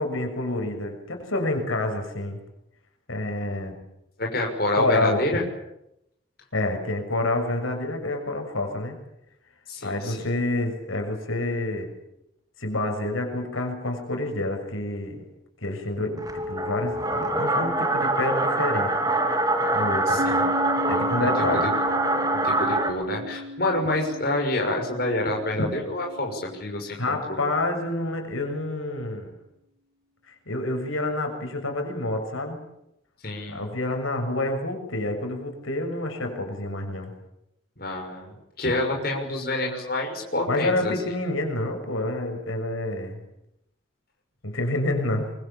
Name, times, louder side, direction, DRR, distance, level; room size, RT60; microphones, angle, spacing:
voice 1, 0.0-2.4 3.1-3.7 4.7-5.2 6.5-9.0 9.8-11.9 12.6-15.2 15.6-19.0 19.7-20.5 20.9-21.7 27.0-29.4 30.3-32.6 33.5-37.1 40.5-43.2 44.4-45.3, left 2 dB, 90° left, 5 dB, 6.5 m, -28 dB
voice 2, 4.2-5.4 9.7-10.3 20.1-20.3 21.0-21.3 22.3-27.2 33.2-33.7 37.8-40.9, left 2 dB, 50° left, 1 dB, 6.2 m, -28 dB
sound 1, 16.2-22.9, right 2 dB, 20° right, 3.1 m, -24 dB
Piano, 20.2-27.4, left 1 dB, 55° right, 3.6 m, -35 dB
24.0 x 24.0 x 8.6 m, 0.81 s
head